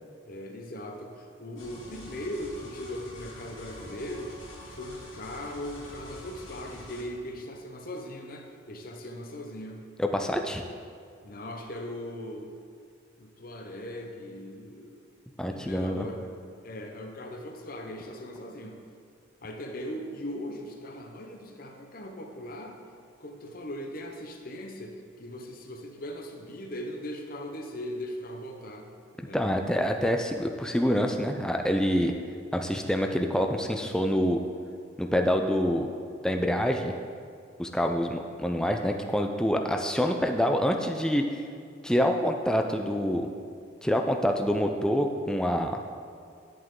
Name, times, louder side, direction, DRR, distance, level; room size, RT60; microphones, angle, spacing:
voice 1, 0.2-4.4 4.6-9.8 11.2-12.5 13.2-15.1 15.4-16.3 16.6-18.8 19.4-22.8 23.2-28.9 29.2-29.4 32.0-32.1, left 1 dB, 45° left, 3 dB, 0.8 m, -39 dB
sound 1, 1.6-7.0, left 1 dB, 80° left, 2.3 m, -46 dB
voice 2, 10.0-10.6 15.4-16.1 29.3-32.1 32.5-34.4 35.0-35.9 36.2-36.9 37.6-41.2 41.8-43.3 43.8-45.8, equal, 5° left, 3 dB, 0.4 m, -26 dB
10.5 x 7.7 x 3.8 m, 2.2 s
head